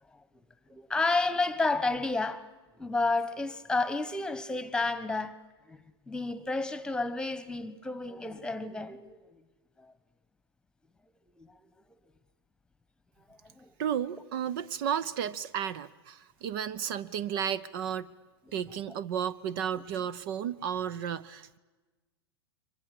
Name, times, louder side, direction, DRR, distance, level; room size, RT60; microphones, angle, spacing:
voice 1, 0.7-2.5 2.8-5.4 5.7-9.4 9.8-9.9 11.4-11.5 13.4-13.7 18.5-18.9, left 3 dB, 5° left, 1.3 m, -31 dB
voice 2, 13.8-18.1 18.5-21.6, right 9 dB, 55° right, 0.8 m, -33 dB
29.5 x 24.0 x 6.7 m
hypercardioid pair, 100°, 14 cm